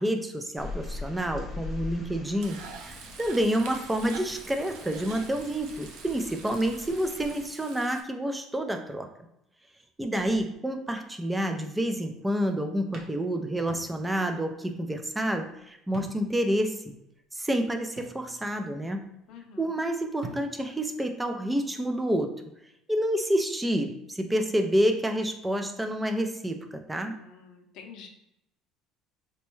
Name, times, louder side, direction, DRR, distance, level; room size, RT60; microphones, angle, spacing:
voice 1, 0.0-9.1 10.0-16.8 17.3-19.1 19.6-22.3 22.9-27.2, right 1 dB, 10° right, 5 dB, 0.4 m, -28 dB
sound 1, 0.6-7.5, left 3 dB, 10° left, 0.9 m, -42 dB
Frying (food), 2.4-8.0, right 6 dB, 75° right, 0.4 m, -46 dB
sound 2, 12.9-14.3 14.6-14.7 15.9-16.5 16.9-17.0 18.0-18.7 19.9-20.0 20.2-20.9, right 2 dB, 45° right, 0.8 m, -45 dB
voice 2, 19.3-19.7 26.9-28.1, left 6 dB, 65° left, 3 dB, 0.6 m, -48 dB
4.1 x 2.2 x 3.1 m, 0.81 s
cardioid pair, 125°, 0 cm